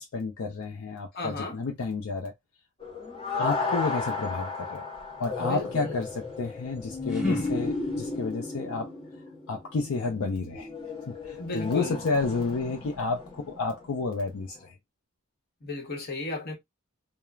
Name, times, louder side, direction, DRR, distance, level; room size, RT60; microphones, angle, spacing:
voice 1, 0.0-2.3 3.4-4.8 5.2-8.9 9.5-10.7 11.2-14.7, left 4 dB, 75° left, 0.5 m, -30 dB
voice 2, 1.1-1.6 5.4-6.0 11.4-12.0 15.6-16.6, left 2 dB, 50° left, 0.9 m, -35 dB
sound 1, 2.8-13.9 14.6-14.7, left 3 dB, 25° left, 0.8 m, -34 dB
sound 2, 6.6-8.3, left 2 dB, ahead, 0.9 m, -35 dB
3.0 x 2.1 x 2.3 m
head